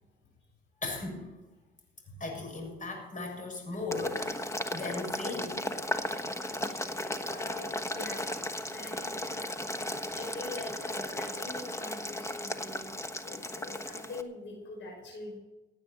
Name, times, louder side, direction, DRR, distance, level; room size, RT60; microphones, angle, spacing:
voice 1, 0.8-1.3 2.2-5.6, left 3 dB, 40° left, 1 dB, 7.0 m, -37 dB
Boiling, 3.9-14.2, left 1 dB, 15° left, 1.2 m, -36 dB
voice 2, 7.2-12.9 13.2-15.4, left 3 dB, 70° left, -1 dB, 5.5 m, -44 dB
16.5 x 8.8 x 7.5 m, 1.1 s
cardioid pair, 90°, 20 cm